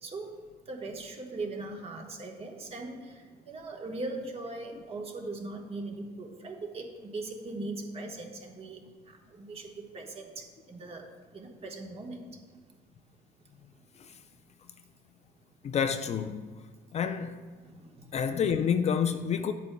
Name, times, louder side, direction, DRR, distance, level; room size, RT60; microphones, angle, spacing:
voice 1, 0.0-0.4 0.6-11.1 11.3-12.6 17.6-18.1, right 2 dB, 35° right, 1.3 m, -40 dB
voice 2, 15.6-16.5 16.9-17.4 18.1-19.5, left 7 dB, 40° left, 0.4 m, -28 dB
10.5 x 8.2 x 2.2 m
cardioid pair, 110°, 17 cm